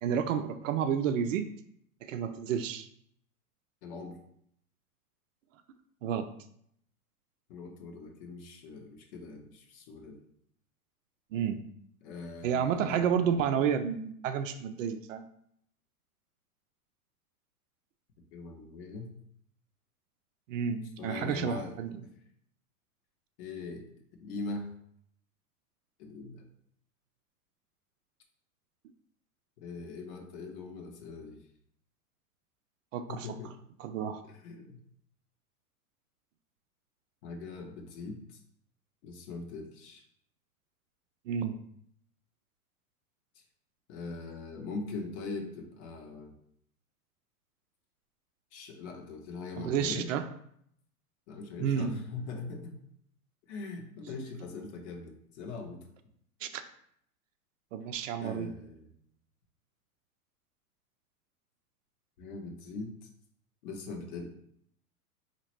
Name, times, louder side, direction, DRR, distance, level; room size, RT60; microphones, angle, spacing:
voice 1, 0.0-1.5 2.0-2.9 6.0-6.3 11.3-11.6 12.4-15.2 20.5-21.9 32.9-33.4 33.8-34.2 41.3-41.6 49.6-50.2 51.6-51.9 56.4-56.6 57.7-58.5, right 8 dB, 60° right, 9 dB, 0.5 m, -30 dB
voice 2, 3.8-4.2 7.5-10.2 12.0-13.0 18.3-19.1 21.0-21.8 23.4-23.9 24.2-24.7 26.0-26.4 29.6-31.4 33.1-33.5 34.2-34.8 37.2-38.4 39.0-40.0 43.9-46.3 48.5-50.1 51.3-52.8 53.5-55.8 58.2-58.9 62.2-62.9 63.6-64.3, left 3 dB, 50° left, 3 dB, 1.2 m, -41 dB
4.0 x 2.9 x 4.4 m, 0.69 s
hypercardioid pair, 105°, 45 cm